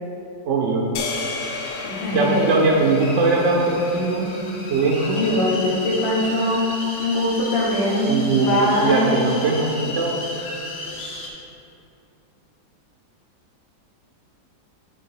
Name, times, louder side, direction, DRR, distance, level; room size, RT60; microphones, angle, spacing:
voice 1, 0.4-0.9 2.1-4.3 4.7-5.2 8.1-10.2, right 3 dB, 75° right, -1 dB, 0.7 m, -20 dB
sound 1, 1.0-5.3, left 4 dB, 65° left, 1.1 m, -34 dB
sound 2, 1.4-11.3, left 1 dB, 50° left, 0.8 m, -34 dB
voice 2, 1.8-2.5 5.1-6.7 7.0-9.3, left 1 dB, 90° left, -6 dB, 2.2 m, -22 dB
8.1 x 2.8 x 5.7 m, 2.8 s
omnidirectional pair, 2.0 m